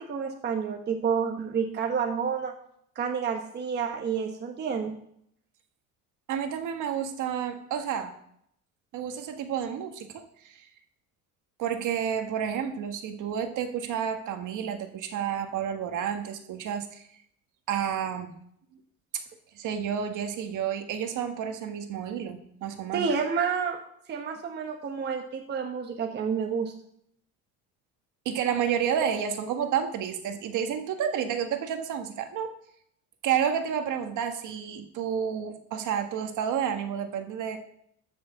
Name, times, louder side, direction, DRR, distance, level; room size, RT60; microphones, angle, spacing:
voice 1, 0.0-2.5 2.9-4.9 22.9-23.8 24.1-26.7, right 6 dB, 30° right, 3 dB, 1.1 m, -29 dB
voice 2, 6.3-8.1 8.9-10.6 11.6-17.0 17.7-18.3 19.6-23.1 28.2-32.5 33.2-37.6, right 8 dB, 55° right, 6 dB, 1.6 m, -30 dB
13.5 x 6.2 x 7.2 m, 0.70 s
cardioid pair, 175°, 36 cm